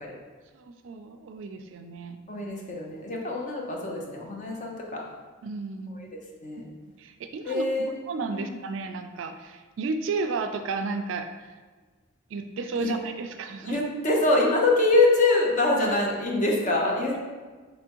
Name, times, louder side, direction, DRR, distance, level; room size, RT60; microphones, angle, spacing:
voice 1, 0.5-2.2 5.4-6.0 7.0-7.7 8.1-11.5 12.3-13.8, right 4 dB, 65° right, 7 dB, 0.3 m, -33 dB
voice 2, 2.3-5.0 5.8-6.0 6.4-6.7 7.5-8.0 8.3-8.5 12.7-12.9 13.6-17.2, left 2 dB, 40° left, -1 dB, 0.7 m, -24 dB
4.2 x 3.4 x 2.9 m, 1.4 s
head